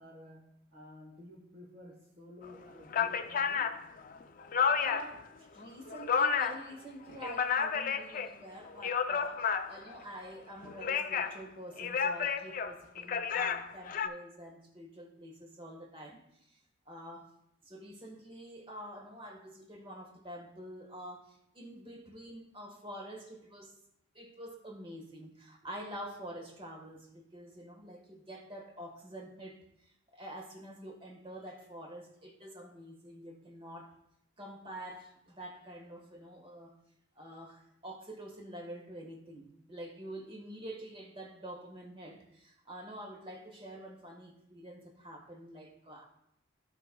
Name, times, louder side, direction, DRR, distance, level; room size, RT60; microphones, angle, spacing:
voice 1, 0.0-3.7, left 1 dB, 50° right, -2 dB, 1.3 m, -52 dB
sound 1, 2.4-2.5 2.9-5.2 5.6-6.7 7.0-8.3 8.7-9.9 10.6-11.4 11.8-14.1, left 6 dB, 45° left, 0.4 m, -31 dB
voice 2, 4.7-16.6 16.8-17.3 17.6-23.8 24.1-33.9 34.4-36.8 37.1-46.0, right 1 dB, 25° right, 1 dB, 1.4 m, -47 dB
15.5 x 5.4 x 2.3 m, 0.79 s
head